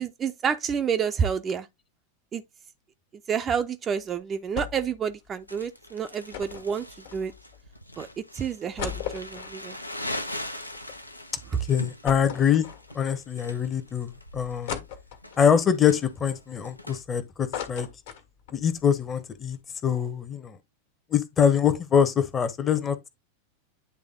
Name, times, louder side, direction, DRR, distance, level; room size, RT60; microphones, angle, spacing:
voice 1, 0.0-1.7 2.3-2.4 3.3-6.8 7.1-7.3 8.0-8.1 8.3-9.8, right 7 dB, 25° right, 0.6 m, -29 dB
sound 1, 4.6-5.0 5.3-5.4 6.3-7.6 8.1-8.2 8.5-11.0 11.4-11.5 12.1-13.2 13.7-13.8 14.7-15.5 16.1-17.0 17.3-18.6 19.0-19.1 19.3-19.6, left 8 dB, 55° left, 1.7 m, -37 dB
Crumpling crinkling, 5.5-17.0, left 1 dB, 85° left, 0.7 m, -40 dB
voice 2, 11.7-12.7 12.9-14.8 15.4-17.9 18.5-19.6 19.8-20.6 21.1-23.1, left 8 dB, 25° left, 1.1 m, -24 dB
9.7 x 3.5 x 3.7 m
figure-of-eight pair, 90°, 0 cm